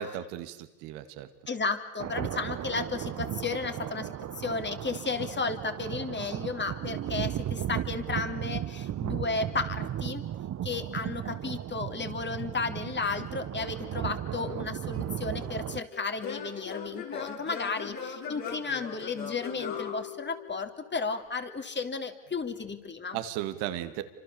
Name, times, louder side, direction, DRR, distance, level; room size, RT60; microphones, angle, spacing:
voice 1, 0.0-1.3 23.1-24.0, right 11 dB, 80° right, 10 dB, 2.3 m, -35 dB
voice 2, 1.5-10.3 10.6-23.2, left 4 dB, 30° left, 7 dB, 3.2 m, -33 dB
sound 1, 2.0-15.8, right 11 dB, 45° right, 1.0 m, -35 dB
Singing / Plucked string instrument, 14.9-20.8, left 6 dB, 60° left, 6.3 m, -39 dB
29.5 x 26.0 x 7.1 m, 1.0 s
hypercardioid pair, 70°, 38 cm